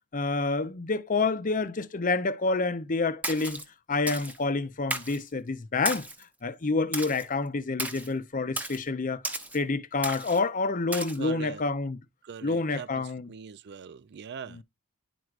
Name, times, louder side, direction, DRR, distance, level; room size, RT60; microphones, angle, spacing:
voice 1, 0.1-3.6 3.9-6.1 6.4-12.0 12.4-13.3 14.5-14.6, left 3 dB, 35° left, 0.6 m, -28 dB
Splash splatter, 3.2-3.6 4.1-4.4 4.9-5.2 5.9-6.2 6.9-7.3 7.8-8.1 8.6-8.8 9.2-9.6 10.0-10.4 10.9-11.2, right 1 dB, 5° right, 0.8 m, -34 dB
voice 2, 11.2-11.6 12.2-14.6, right 6 dB, 50° right, 0.4 m, -41 dB
11.0 x 4.6 x 2.4 m
head